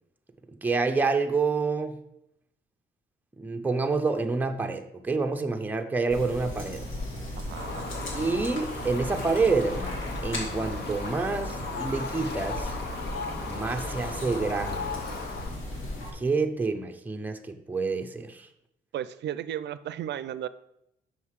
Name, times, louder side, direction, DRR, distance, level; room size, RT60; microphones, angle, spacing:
voice 1, 0.6-2.0 3.4-6.8 8.1-12.7 13.5-15.0 16.1-18.5, right 4 dB, 10° right, 4 dB, 0.6 m, -28 dB
sound 1, 6.1-16.1, left 1 dB, 80° left, 2.5 m, -37 dB
voice 2, 7.4-7.9 18.9-20.5, right 11 dB, 60° right, 15 dB, 0.5 m, -34 dB
Fowl, 7.5-15.6, left 3 dB, 55° left, 1.2 m, -37 dB
6.4 x 5.5 x 4.7 m, 0.81 s
cardioid pair, 90°, 20 cm